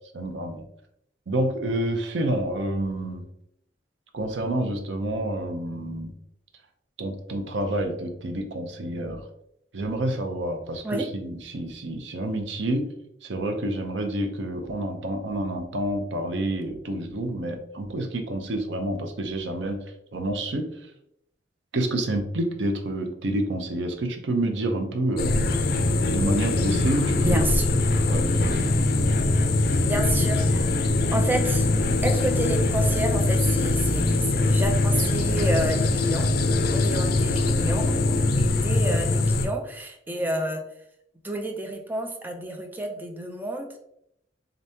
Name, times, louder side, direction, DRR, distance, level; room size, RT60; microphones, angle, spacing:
voice 1, 0.1-0.6 1.3-3.2 4.1-6.1 7.0-9.3 9.7-12.9 13.2-19.8 20.1-20.7 21.7-25.5 26.1-27.5 28.1-28.7, right 1 dB, 80° right, 5 dB, 0.6 m, -28 dB
sound 1, 25.2-39.5, left 2 dB, 55° left, 0.5 m, -22 dB
voice 2, 27.2-27.7 29.8-30.7 31.1-31.7 32.0-36.3 36.7-40.6 41.2-43.7, right 1 dB, 10° right, 3 dB, 0.4 m, -30 dB
3.9 x 3.4 x 2.8 m, 0.76 s
head